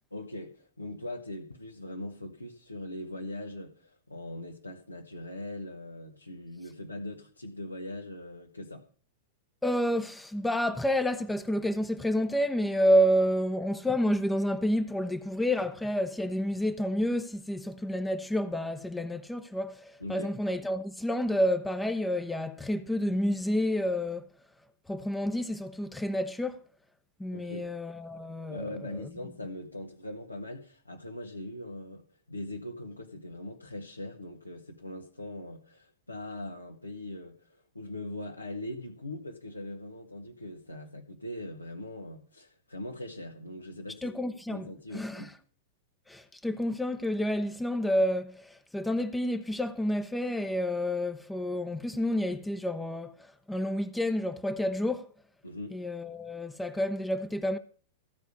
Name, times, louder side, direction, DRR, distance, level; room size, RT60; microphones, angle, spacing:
voice 1, 0.1-8.9 20.0-20.3 27.3-27.7 28.5-44.1 44.5-45.3 55.4-55.7, left 1 dB, 85° left, 1.6 m, -41 dB
voice 2, 9.6-24.2 24.9-26.6 27.2-29.1 44.0-44.7 44.9-45.3 46.1-55.1 55.7-57.6, equal, 5° left, 0.8 m, -29 dB
15.0 x 5.5 x 8.4 m
figure-of-eight pair, 95°, 0 cm